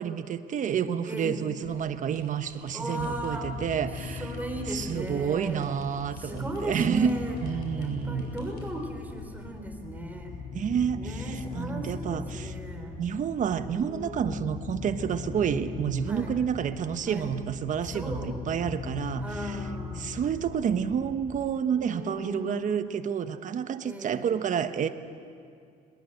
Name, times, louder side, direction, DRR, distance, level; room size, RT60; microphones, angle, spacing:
voice 1, 0.0-4.3 4.7-7.1 7.4-8.2 10.5-11.1 11.5-12.5 13.0-19.2 20.0-24.9, right 8 dB, 50° right, 9 dB, 1.2 m, -29 dB
voice 2, 1.1-1.4 2.7-3.6 4.2-5.8 6.1-7.4 7.8-10.3 11.0-13.0 13.7-14.3 16.1-16.4 17.1-17.3 17.8-18.4 19.2-20.1 21.7-23.1 23.8-24.4, right 1 dB, 10° right, 3 dB, 3.9 m, -37 dB
sound 1, 1.6-9.5, left 2 dB, 85° left, 6.4 m, -53 dB
sound 2, 3.0-21.4, left 5 dB, 40° left, 3.9 m, -39 dB
21.5 x 20.5 x 7.9 m, 2.3 s
cardioid pair, 110°, 17 cm